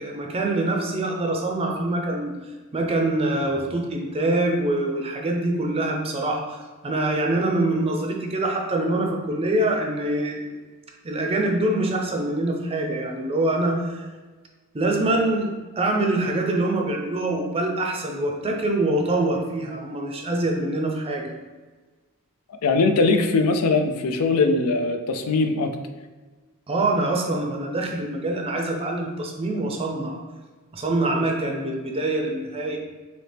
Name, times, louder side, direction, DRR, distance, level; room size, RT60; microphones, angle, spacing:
voice 1, 0.0-2.3 2.7-10.5 11.0-14.0 14.7-21.3 26.7-30.2 30.7-32.8, right 2 dB, 25° right, 1 dB, 0.5 m, -24 dB
voice 2, 22.6-25.7, left 3 dB, 80° left, 6 dB, 0.4 m, -21 dB
4.2 x 2.8 x 3.4 m, 1.3 s
head